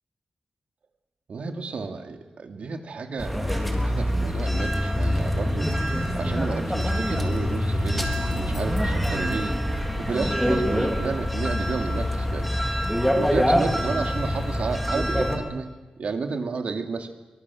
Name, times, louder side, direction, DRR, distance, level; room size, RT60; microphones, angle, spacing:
voice 1, 1.3-5.7 6.2-9.5 10.0-12.5 13.2-15.7 16.0-17.1, right 4 dB, 65° right, 5 dB, 2.7 m, -32 dB
sound 1, 3.2-15.4, equal, ahead, 3.6 m, -25 dB
26.5 x 24.0 x 7.3 m, 1.2 s
wide cardioid pair, 135°, 2 cm